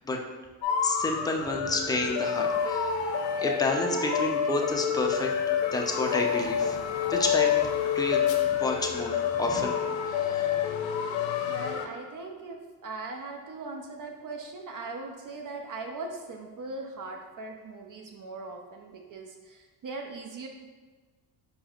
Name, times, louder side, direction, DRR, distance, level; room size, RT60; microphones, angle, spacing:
sound 1, 0.6-11.9, left 8 dB, 75° left, 0.6 m, -28 dB
voice 1, 0.8-3.0 3.4-5.4 5.7-6.8 7.1-7.5 8.0-8.2 8.5-9.7 10.0-10.5, left 2 dB, 10° left, 1 dB, 0.5 m, -30 dB
voice 2, 11.5-20.5, right 3 dB, 45° right, 3 dB, 0.6 m, -40 dB
4.7 x 4.2 x 2.4 m, 1.4 s
cardioid pair, 80°, 46 cm